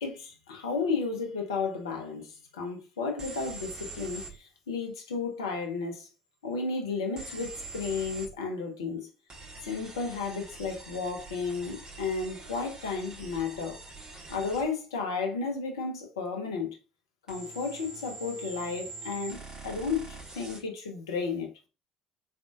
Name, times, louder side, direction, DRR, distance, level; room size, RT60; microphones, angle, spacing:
voice 1, 0.0-6.1 6.4-9.1 9.6-13.8 14.3-16.8 17.3-21.7, left 4 dB, 80° left, 0.9 m, -33 dB
sound 1, 3.2-4.3 7.2-8.3 9.3-14.7 17.3-20.6, right 3 dB, 35° right, 2.5 m, -44 dB
4.6 x 3.7 x 2.4 m
figure-of-eight pair, 55°, 2 cm